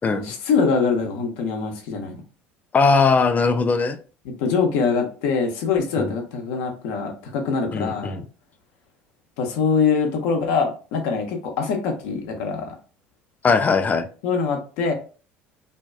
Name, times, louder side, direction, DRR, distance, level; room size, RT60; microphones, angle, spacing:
voice 1, 0.1-2.2 4.2-8.2 9.4-12.8 14.2-14.9, left 5 dB, 65° left, 3 dB, 0.6 m, -23 dB
voice 2, 2.7-4.0 6.0-6.1 7.7-8.2 13.4-14.1, left 4 dB, 25° left, 9 dB, 0.4 m, -19 dB
2.6 x 2.2 x 2.2 m, 0.37 s
figure-of-eight pair, 65°, 6 cm